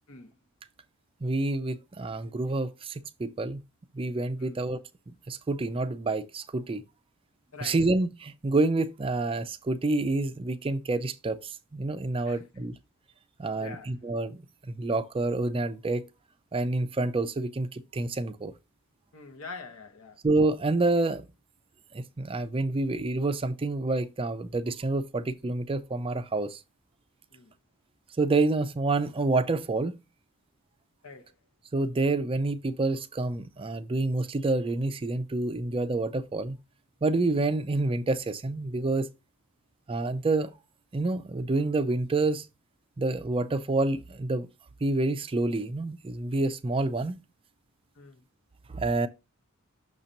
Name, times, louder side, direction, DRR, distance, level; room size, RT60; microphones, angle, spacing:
voice 1, 1.2-3.6 3.9-4.8 5.1-6.8 7.6-12.7 13.4-14.4 14.7-16.1 16.5-18.5 20.2-21.3 21.9-26.6 28.2-30.0 31.7-36.6 37.0-39.1 39.9-40.5 40.9-42.5 43.0-44.5 44.8-47.2 48.7-49.1, right 2 dB, 25° right, 0.4 m, -28 dB
voice 2, 7.5-7.8 12.2-12.7 13.6-13.9 19.1-20.2 27.3-27.5 31.0-31.4 47.9-48.2, left 4 dB, 70° left, 1.1 m, -45 dB
6.5 x 2.9 x 5.1 m
head